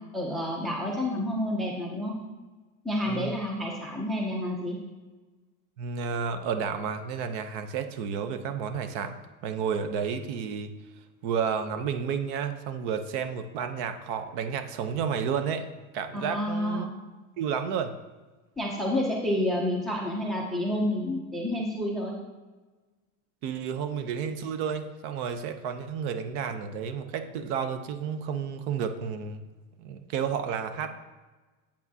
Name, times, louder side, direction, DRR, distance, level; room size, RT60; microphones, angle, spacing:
voice 1, 0.1-2.1 2.8-4.8 16.1-16.9 18.6-22.1, left 1 dB, ahead, -1 dB, 0.4 m, -29 dB
voice 2, 5.8-9.2 9.4-10.7 11.2-15.7 15.9-16.9 17.4-18.0 23.4-29.4 29.8-30.9, right 7 dB, 55° right, 9 dB, 0.7 m, -31 dB
8.4 x 8.3 x 2.7 m, 1.2 s
cardioid pair, 165°, 41 cm